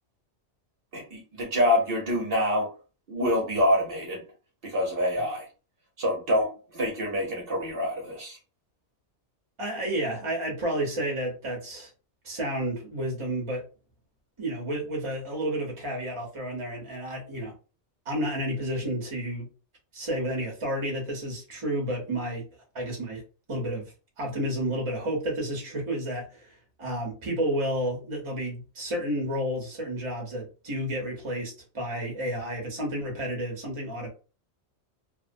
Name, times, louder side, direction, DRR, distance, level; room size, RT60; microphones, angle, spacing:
voice 1, 0.9-2.7 3.1-4.2 4.6-5.5 6.0-8.4, left 1 dB, 55° right, 0.9 m, -26 dB
voice 2, 9.6-11.9 12.2-13.6 14.4-17.5 18.1-19.5 19.9-22.4 22.7-23.2 23.5-23.9 24.2-26.5 26.8-34.1, right 1 dB, 30° right, 0.8 m, -31 dB
2.8 x 2.0 x 2.5 m
omnidirectional pair, 1.2 m